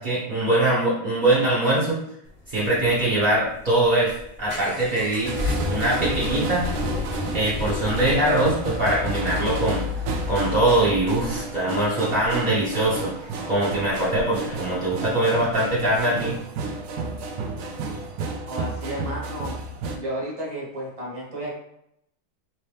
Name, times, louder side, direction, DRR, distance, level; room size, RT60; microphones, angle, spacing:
voice 1, 0.0-2.0 2.5-5.3 5.7-6.7 7.3-9.8 10.3-13.1 13.5-16.3, right 1 dB, 70° right, -8 dB, 0.4 m, -22 dB
sound 1, 2.3-16.1, left 3 dB, 50° left, 0.5 m, -34 dB
sound 2, 5.2-20.0, right 3 dB, 90° right, 0.8 m, -32 dB
voice 2, 18.5-19.6 20.0-21.5, equal, 25° right, -5 dB, 0.7 m, -32 dB
3.1 x 3.0 x 3.2 m, 0.75 s
omnidirectional pair, 2.3 m